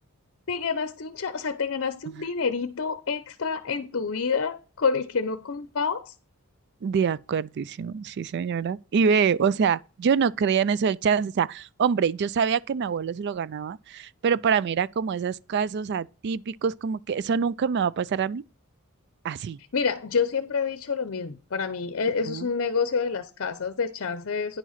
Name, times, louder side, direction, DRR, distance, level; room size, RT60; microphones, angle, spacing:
voice 1, 0.5-6.1 19.7-24.6, left 5 dB, 60° left, 0.7 m, -28 dB
voice 2, 6.8-18.4 19.2-19.6 22.3-22.5, right 6 dB, 50° right, 0.3 m, -25 dB
9.9 x 4.6 x 5.7 m
head